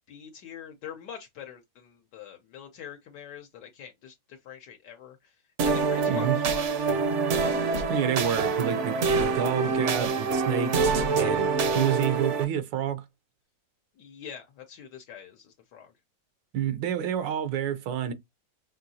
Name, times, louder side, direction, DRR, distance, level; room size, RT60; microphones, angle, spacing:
voice 1, 0.0-7.2 8.1-8.5 14.0-15.9, left 8 dB, 75° left, 1.3 m, -45 dB
sound 1, 5.6-12.4, right 4 dB, 60° right, 0.8 m, -26 dB
voice 2, 7.9-11.5 11.7-13.0 16.5-18.1, right 9 dB, 85° right, 1.4 m, -29 dB
5.7 x 2.7 x 2.7 m
omnidirectional pair, 1.9 m